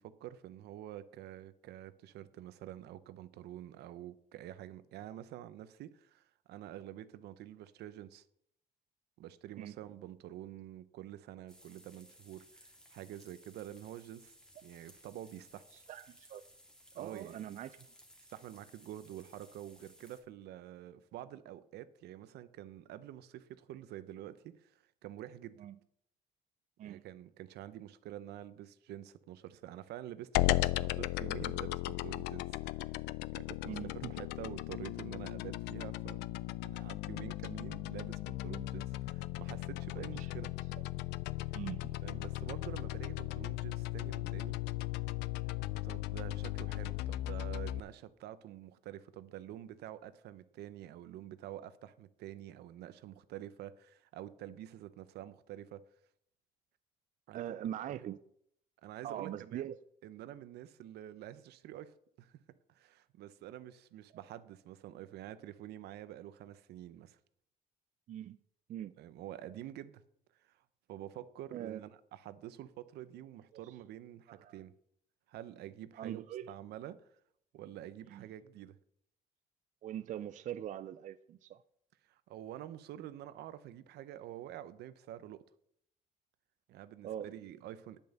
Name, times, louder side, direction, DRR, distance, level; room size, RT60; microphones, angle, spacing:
voice 1, 0.0-8.3 9.2-14.3 14.6-15.6 16.9-17.4 18.3-25.6 26.8-33.0 33.3-36.2 36.6-40.5 42.0-44.6 45.8-55.8 57.3-57.4 57.9-58.0 58.8-59.7 60.0-62.4 62.7-67.2 69.0-70.0 70.4-70.6 70.9-74.7 75.3-76.2 76.5-77.1 77.5-78.8 82.1-85.4 86.7-88.0, right 12 dB, 75° right, 0.8 m, -48 dB
sound 1, 11.5-20.2, equal, 5° left, 2.0 m, -60 dB
voice 2, 15.7-16.4 17.0-17.9 25.6-25.8 26.8-27.0 33.6-34.1 40.1-40.3 41.5-41.9 57.3-58.2 59.0-59.8 68.1-68.4 68.7-68.9 71.5-71.8 73.6-73.7 74.3-74.6 75.9-76.5 78.1-78.3 79.8-81.6 87.0-87.3, right 11 dB, 50° right, 0.4 m, -42 dB
sound 2, 30.3-47.8, left 17 dB, 90° left, 0.4 m, -37 dB
10.0 x 5.3 x 7.7 m
cardioid pair, 110°, 17 cm